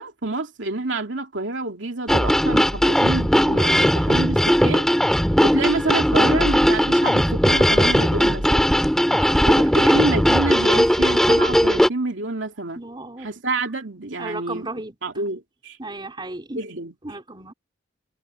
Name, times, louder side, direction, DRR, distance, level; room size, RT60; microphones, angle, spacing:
voice 1, 0.0-4.9 5.4-8.7 9.5-12.8 13.2-14.7 15.0-15.8 16.5-16.9, right 2 dB, 70° right, 2.8 m, -28 dB
sound 1, 2.1-11.9, equal, ahead, 2.3 m, -18 dB
voice 2, 9.1-9.6 12.8-13.3 14.2-15.0 15.8-16.6 17.0-17.5, right 2 dB, 25° right, 3.7 m, -34 dB
head